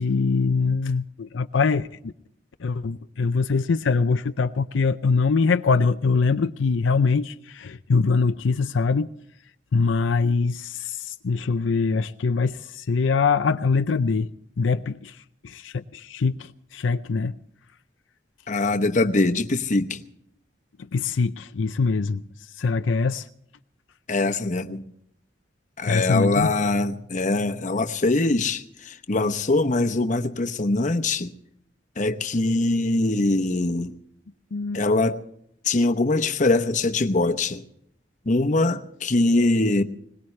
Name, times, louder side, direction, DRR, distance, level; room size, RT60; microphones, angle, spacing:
voice 1, 0.0-2.1 2.6-9.1 9.7-14.3 14.6-15.2 15.4-17.3 20.9-22.2 22.6-23.3 25.8-26.5 34.5-34.8, left 4 dB, 80° left, 0.5 m, -23 dB
voice 2, 18.5-20.0 24.1-24.8 25.8-31.3 32.0-33.9 34.7-35.2 35.6-37.6 38.3-39.8, left 2 dB, 40° left, 0.9 m, -22 dB
21.5 x 19.5 x 3.3 m
head